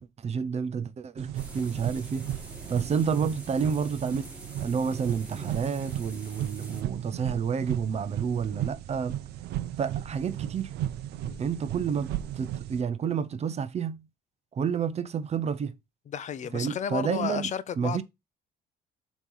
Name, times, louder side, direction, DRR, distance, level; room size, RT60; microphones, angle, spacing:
voice 1, 0.0-2.3 2.7-4.2 4.6-9.2 9.8-10.7 11.4-12.1 12.3-14.0 14.5-15.7 16.5-17.5 17.8-18.0, right 6 dB, 40° right, 0.8 m, -30 dB
sound 1, 1.2-12.8, right 12 dB, 75° right, 0.7 m, -35 dB
sound 2, 1.3-6.8, right 1 dB, 10° right, 2.3 m, -45 dB
voice 2, 16.1-18.0, left 8 dB, 45° left, 0.6 m, -33 dB
7.3 x 3.2 x 5.5 m
cardioid pair, 110°, 17 cm